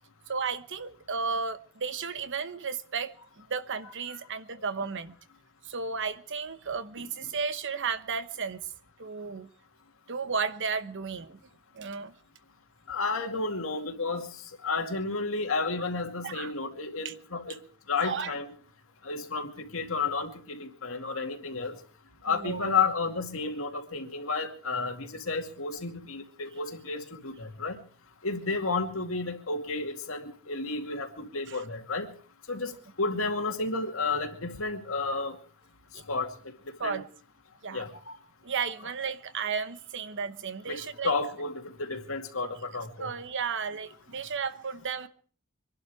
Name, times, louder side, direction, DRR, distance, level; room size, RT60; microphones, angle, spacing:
voice 1, 0.3-5.2 5.6-8.6 9.0-9.5 10.1-11.4 11.7-12.1 16.2-16.5 17.0-17.1 18.0-18.3 22.3-22.8 31.5-31.6 35.9-36.0 36.8-37.0 37.6-37.8 38.4-41.1 43.0-45.1, right 5 dB, 60° right, 1.0 m, -33 dB
voice 2, 12.9-14.3 14.6-17.6 17.9-18.5 19.0-21.7 22.2-27.8 28.2-32.1 32.5-32.7 33.0-35.4 36.1-36.3 36.8-37.0 37.7-38.2 40.7-43.1, left 4 dB, 70° left, 2.3 m, -32 dB
25.0 x 11.5 x 4.8 m
head